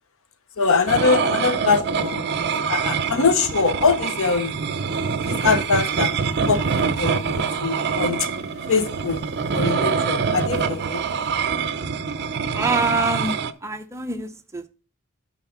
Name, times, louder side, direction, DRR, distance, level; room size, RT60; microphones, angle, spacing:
voice 1, 0.6-4.5 5.3-6.1 6.5-8.3 8.7-9.2 9.5-11.1, left 4 dB, 65° left, 0.8 m, -23 dB
sound 1, 0.9-13.5, right 5 dB, 50° right, 0.6 m, -25 dB
sound 2, 4.1-11.3, left 2 dB, 50° left, 2.3 m, -44 dB
voice 2, 12.5-14.7, right 2 dB, 15° right, 0.7 m, -26 dB
9.4 x 4.2 x 5.9 m
head